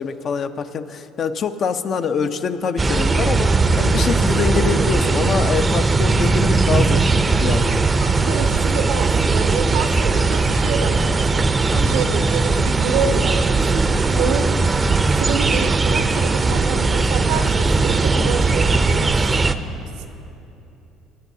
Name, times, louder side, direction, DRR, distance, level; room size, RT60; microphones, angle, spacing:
voice 1, 0.0-7.1 7.4-7.9 11.7-12.0 14.1-14.2, left 6 dB, 50° left, 9 dB, 0.6 m, -25 dB
sound 1, 2.8-19.5, right 3 dB, 25° right, 0.5 m, -18 dB
voice 2, 8.0-11.5 11.8-14.5 15.1-19.3, right 6 dB, 80° right, 8 dB, 0.7 m, -28 dB
22.0 x 9.6 x 2.7 m, 2.9 s
hypercardioid pair, 70°, 0 cm